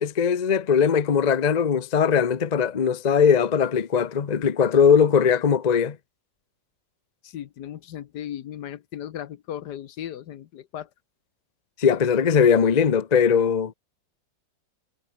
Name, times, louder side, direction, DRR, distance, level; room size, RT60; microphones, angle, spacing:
voice 1, 0.0-6.0 11.8-13.7, left 7 dB, 40° left, 0.6 m, -20 dB
voice 2, 7.2-10.9, left 10 dB, 70° left, 1.4 m, -36 dB
omnidirectional pair, 2.0 m